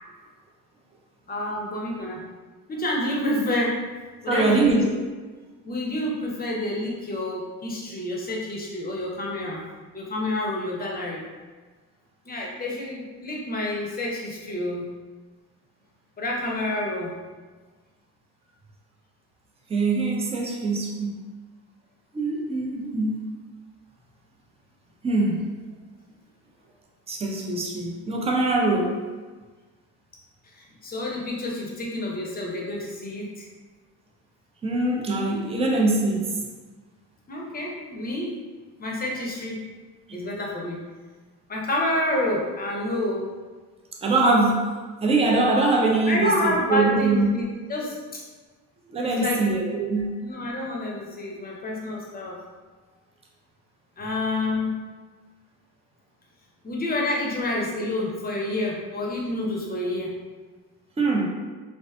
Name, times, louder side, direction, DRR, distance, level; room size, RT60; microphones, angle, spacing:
voice 1, 1.3-2.2 2.7-3.8 4.2-4.9 5.6-9.6 9.9-11.2 12.3-14.8 16.2-17.1 30.4-33.5 37.3-38.3 38.8-39.6 40.1-40.8 41.5-43.3 46.1-48.2 49.0-49.4 50.2-52.4 54.0-54.7 56.6-60.1, left 1 dB, 20° left, -2 dB, 0.7 m, -28 dB
voice 2, 4.3-4.8 19.7-21.2 22.1-23.2 25.0-25.5 27.1-29.0 34.6-36.3 40.1-40.2 44.0-44.6 45.0-47.3 48.9-50.1 61.0-61.3, right 3 dB, 15° right, 0 dB, 0.4 m, -23 dB
2.5 x 2.3 x 2.2 m, 1.4 s
hypercardioid pair, 65°, 45 cm